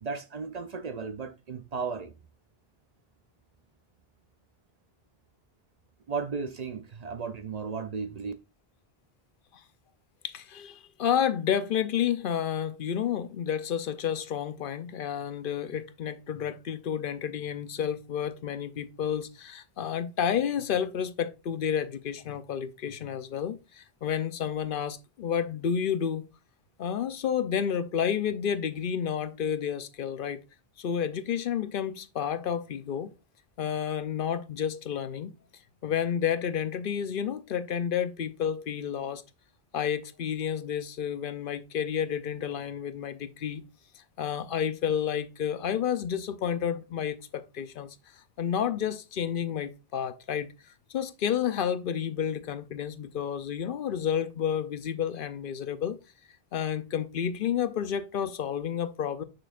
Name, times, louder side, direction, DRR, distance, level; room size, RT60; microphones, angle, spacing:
voice 1, 0.0-2.1 6.1-8.3, right 5 dB, 50° right, 0.6 m, -35 dB
voice 2, 10.2-26.3 26.8-30.4 30.8-33.1 33.6-35.3 35.8-39.2 39.7-43.6 44.2-48.0 48.4-50.5 50.9-56.0 56.5-59.2, left 8 dB, 65° left, 0.8 m, -30 dB
6.4 x 6.3 x 2.4 m
omnidirectional pair, 1.0 m